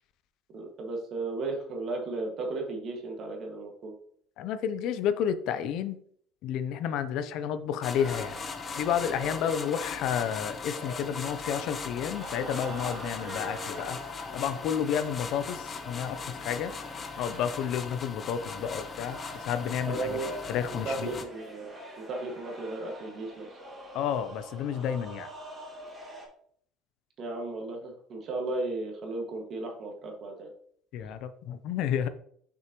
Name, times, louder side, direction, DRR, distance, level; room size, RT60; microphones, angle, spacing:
voice 1, 0.5-3.9 9.1-9.6 19.9-20.4 20.7-21.7 22.1-23.5 27.2-30.5, right 2 dB, 50° right, 2 dB, 1.8 m, -35 dB
voice 2, 4.4-6.0 6.4-8.4 8.8-14.0 14.3-16.7 17.2-20.2 20.5-21.1 23.9-25.3 30.9-32.1, left 8 dB, 65° left, 11 dB, 0.5 m, -31 dB
sound 1, 7.8-21.2, left 5 dB, 30° left, 0.7 m, -39 dB
sound 2, 7.9-26.3, equal, 20° right, 2.2 m, -45 dB
6.1 x 5.9 x 3.0 m, 0.63 s
cardioid pair, 115°, 0 cm